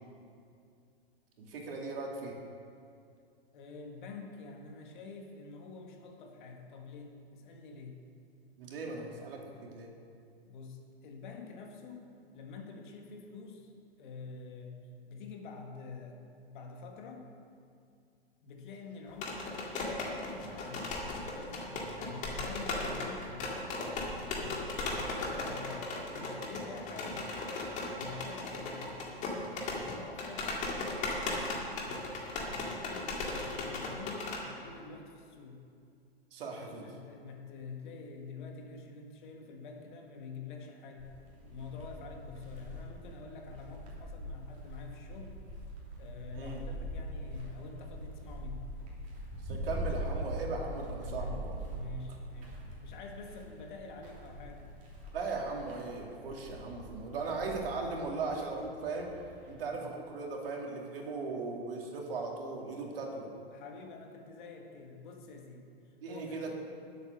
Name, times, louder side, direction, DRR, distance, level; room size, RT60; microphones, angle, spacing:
voice 1, 1.4-2.4 8.6-9.9 31.3-31.4 36.3-36.9 46.3-46.6 49.4-51.5 55.1-59.1 59.5-63.3 66.0-66.5, right 3 dB, 65° right, 0 dB, 2.5 m, -38 dB
voice 2, 3.5-8.0 10.5-13.7 14.0-14.8 15.1-16.2 16.5-17.3 18.4-25.8 26.1-27.3 28.0-29.0 29.7-35.6 36.5-41.1 41.4-45.4 46.0-48.7 51.0-51.3 51.7-54.7 59.7-59.9 63.5-66.5, left 4 dB, 50° left, 2 dB, 1.9 m, -47 dB
sound 1, 19.1-34.4, left 2 dB, 25° left, 1.9 m, -37 dB
sound 2, 41.0-59.5, equal, 25° right, 3.1 m, -43 dB
11.0 x 8.1 x 6.5 m, 2.4 s
hypercardioid pair, 140°, 31 cm